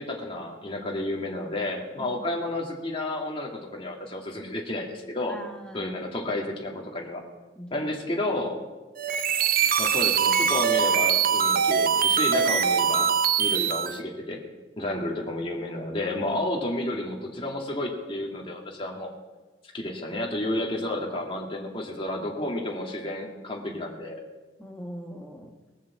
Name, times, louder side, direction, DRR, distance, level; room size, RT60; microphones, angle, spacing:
voice 1, 0.0-5.4 5.7-7.2 7.7-8.6 9.8-14.4 14.8-19.1 19.7-24.2, left 1 dB, 30° left, 0 dB, 2.2 m, -31 dB
voice 2, 5.3-6.0 7.5-7.9 24.6-25.6, equal, 5° left, 2 dB, 1.5 m, -41 dB
sound 1, 9.0-14.0, right 7 dB, 50° right, 0.7 m, -23 dB
20.0 x 7.2 x 7.3 m, 1.2 s
head